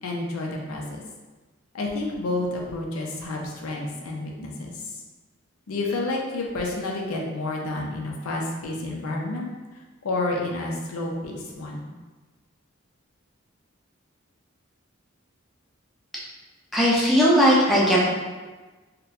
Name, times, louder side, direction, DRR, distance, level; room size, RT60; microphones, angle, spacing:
voice 1, 0.0-1.0 1.7-4.8 5.7-9.5 10.0-11.9, left 2 dB, 85° left, 0 dB, 0.6 m, -30 dB
voice 2, 16.7-18.1, equal, ahead, -7 dB, 0.5 m, -18 dB
4.0 x 2.2 x 2.6 m, 1.3 s
head